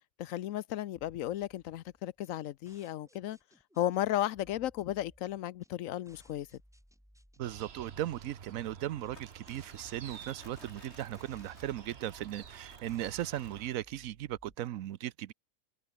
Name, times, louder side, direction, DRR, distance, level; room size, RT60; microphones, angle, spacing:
voice 1, 0.2-3.4 3.8-6.5, left 13 dB, 80° left, 1.0 m, -34 dB
sound 1, 0.9-14.5, equal, ahead, 4.9 m, -63 dB
sound 2, 7.4-13.7, right 7 dB, 55° right, 1.2 m, -51 dB
voice 2, 7.4-15.3, right 13 dB, 90° right, 1.1 m, -37 dB
Crumpling crinkling, 9.1-14.0, left 1 dB, 55° left, 7.7 m, -59 dB
omnidirectional pair, 1.4 m